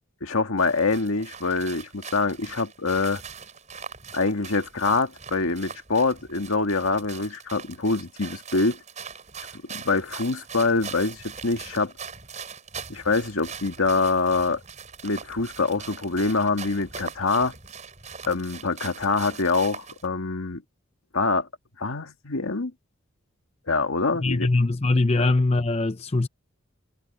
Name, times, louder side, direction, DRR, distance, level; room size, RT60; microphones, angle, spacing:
voice 1, 0.2-3.2 4.1-8.8 9.7-11.9 12.9-14.6 15.0-17.5 18.2-20.6 21.1-21.5 21.8-22.7 23.7-24.5 25.1-25.3, left 3 dB, 80° left, 1.8 m, -25 dB
sound 1, 0.6-20.1, right 6 dB, 35° right, 6.1 m, -41 dB
voice 2, 24.2-26.3, left 2 dB, 30° left, 0.6 m, -22 dB
head